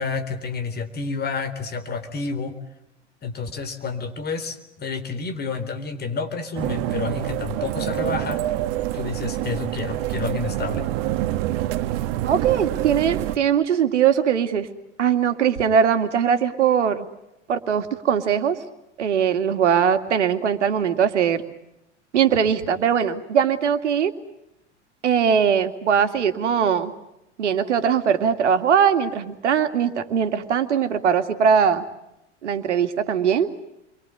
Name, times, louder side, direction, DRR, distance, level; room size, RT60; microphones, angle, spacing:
voice 1, 0.0-2.5 3.2-8.4 8.9-10.9, left 4 dB, 25° left, 11 dB, 4.0 m, -29 dB
sound 1, 6.5-13.4, right 14 dB, 55° right, 1.7 m, -26 dB
voice 2, 12.2-14.7 15.0-17.0 17.5-18.6 19.0-21.4 22.1-24.1 25.0-26.9 27.4-31.8 32.4-33.5, right 7 dB, 75° right, 9 dB, 2.5 m, -20 dB
29.5 x 23.5 x 8.3 m, 0.87 s
hypercardioid pair, 95°, 35 cm